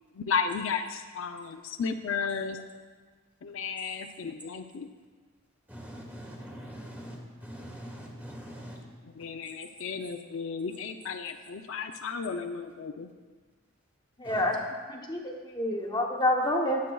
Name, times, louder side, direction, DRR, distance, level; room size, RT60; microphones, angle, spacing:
voice 1, 0.0-2.6 3.4-4.9 9.0-13.1, left 5 dB, 65° left, 6 dB, 0.5 m, -34 dB
voice 2, 5.7-8.8 14.2-14.4, equal, 10° right, -2 dB, 1.4 m, -43 dB
voice 3, 14.2-14.6 14.9-16.8, left 1 dB, 20° left, 0 dB, 0.9 m, -28 dB
19.0 x 7.5 x 2.3 m, 1.4 s
head